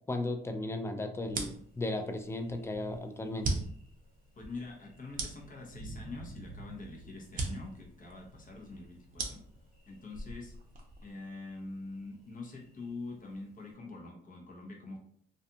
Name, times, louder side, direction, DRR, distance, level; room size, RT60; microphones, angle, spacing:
voice 1, 0.1-3.5, left 2 dB, 15° left, 6 dB, 0.3 m, -35 dB
sound 1, 1.2-11.1, right 3 dB, 45° right, 0.6 m, -41 dB
Thunder, 1.4-13.7, right 2 dB, 90° left, 1.3 m, -55 dB
voice 2, 4.3-9.4 9.9-10.5 11.0-15.0, left 3 dB, 40° left, 0 dB, 0.8 m, -44 dB
2.5 x 2.3 x 2.7 m, 0.66 s
cardioid pair, 90°, 20 cm